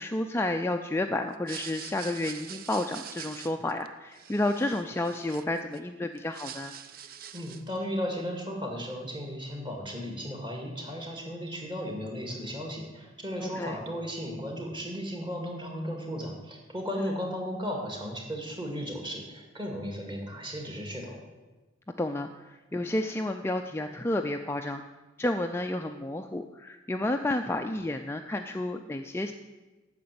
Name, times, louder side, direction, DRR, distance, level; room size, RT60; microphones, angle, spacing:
voice 1, 0.0-6.7 13.4-13.8 17.0-17.1 22.0-24.8 25.2-29.3, left 1 dB, 10° left, 5 dB, 0.3 m, -31 dB
sound 1, 1.3-5.8 6.1-7.8, right 9 dB, 45° right, 0.5 m, -44 dB
voice 2, 7.3-21.2, equal, 25° right, 2 dB, 2.0 m, -35 dB
9.3 x 6.7 x 8.7 m, 1.2 s
head